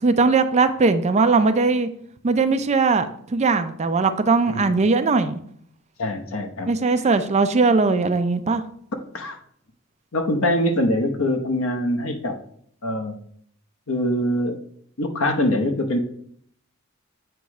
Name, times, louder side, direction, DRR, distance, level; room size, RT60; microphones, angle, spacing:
voice 1, 0.0-1.9 2.2-5.4 6.7-8.6, right 4 dB, 35° right, 9 dB, 0.4 m, -19 dB
voice 2, 6.0-6.7 9.1-9.4 10.1-12.4 12.8-13.2 13.9-14.6 15.0-16.0, left 1 dB, 75° left, 5 dB, 0.9 m, -23 dB
7.9 x 3.1 x 4.8 m, 0.64 s
head